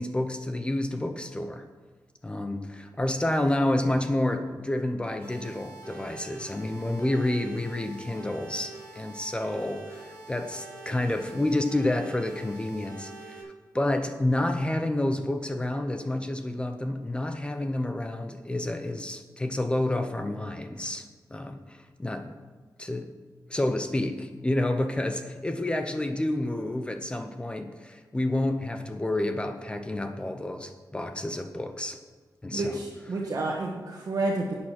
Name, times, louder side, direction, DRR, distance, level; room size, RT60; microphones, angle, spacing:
voice 1, 0.0-1.6 2.2-22.3 22.8-23.2 23.5-32.0 32.4-32.8, left 1 dB, 15° left, 7 dB, 0.7 m, -29 dB
sound 1, 5.2-13.4, right 3 dB, 35° left, 4.1 m, -45 dB
voice 2, 32.5-34.5, right 2 dB, 55° right, -3 dB, 1.5 m, -30 dB
11.0 x 8.7 x 5.9 m, 1.4 s
wide cardioid pair, 170°, 7 cm